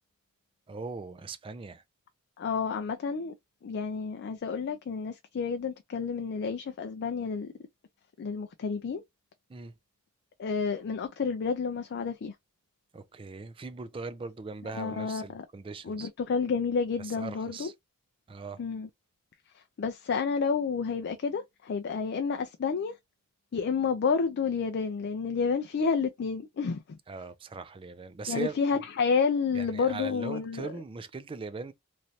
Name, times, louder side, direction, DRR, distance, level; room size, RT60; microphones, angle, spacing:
voice 1, 0.7-1.8 9.5-9.7 12.9-16.1 17.0-17.7 18.3-18.6 27.1-28.5 29.5-31.7, right 4 dB, 25° right, 0.4 m, -40 dB
voice 2, 2.4-3.3 3.6-7.5 8.2-9.0 10.4-12.3 14.7-15.4 15.8-17.7 18.6-18.9 19.5-22.9 23.5-26.8 28.3-30.7, left 5 dB, 50° left, 0.4 m, -30 dB
3.1 x 2.6 x 2.7 m
head